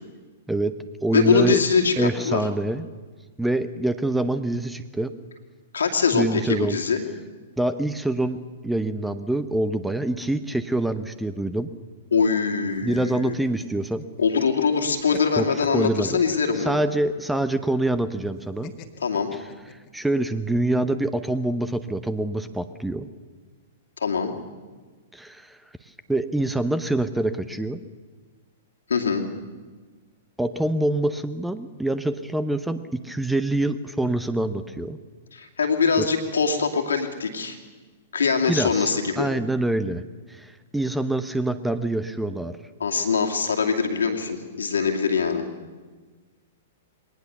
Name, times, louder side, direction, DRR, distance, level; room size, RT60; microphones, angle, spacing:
voice 1, 0.5-1.6 2.0-2.9 3.4-5.1 6.1-6.8 7.6-8.4 8.6-11.7 12.8-14.1 15.4-15.5 15.7-16.2 16.6-18.7 19.7-23.1 25.1-25.6 26.1-27.8 30.4-35.0 36.0-36.1 38.5-38.9 39.2-40.0 40.3-42.6, right 1 dB, 5° right, 12 dB, 0.8 m, -25 dB
voice 2, 1.1-2.4 5.7-7.0 12.1-13.3 14.2-16.8 19.0-19.3 24.0-24.3 28.9-29.3 35.3-37.6 38.1-39.3 42.8-45.4, left 5 dB, 70° left, 2 dB, 2.4 m, -23 dB
sound 1, 12.7-14.5 14.8-17.0 18.6-20.1, left 11 dB, 35° left, 1.7 m, -41 dB
21.5 x 18.5 x 6.8 m, 1.4 s
figure-of-eight pair, 105°, 0 cm